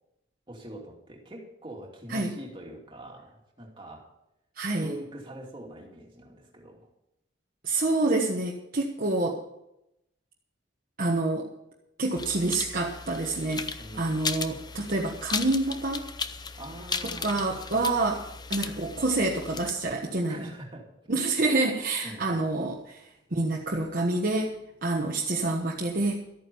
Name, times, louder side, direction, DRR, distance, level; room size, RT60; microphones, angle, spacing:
voice 1, 0.5-4.1 4.7-6.9 13.8-14.3 16.6-17.4 17.7-17.9 20.3-20.9 21.4-21.7 22.0-22.5, right 1 dB, 25° right, -1 dB, 2.6 m, -44 dB
voice 2, 4.6-4.9 7.6-9.4 11.0-11.5 12.0-16.1 17.2-18.2 18.5-20.4 21.1-23.0 23.3-26.2, right 2 dB, 45° right, -1 dB, 1.3 m, -27 dB
sound 1, 12.2-19.7, left 5 dB, 20° left, 0.6 m, -36 dB
13.0 x 9.3 x 7.0 m, 0.84 s
head